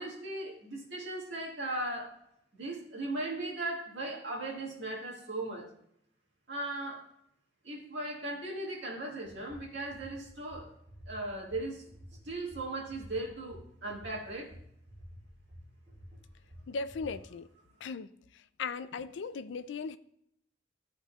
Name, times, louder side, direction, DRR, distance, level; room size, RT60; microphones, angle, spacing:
voice 1, 0.0-2.2 2.5-5.7 6.5-7.1 7.6-10.7 11.1-11.8 12.2-14.5, right 2 dB, 80° right, -3 dB, 1.8 m, -38 dB
sound 1, 9.2-17.2, equal, 25° right, 2.3 m, -51 dB
voice 2, 16.7-17.5 17.8-18.1 18.6-20.0, left 4 dB, 85° left, 14 dB, 0.4 m, -37 dB
12.0 x 4.2 x 2.3 m, 0.73 s
head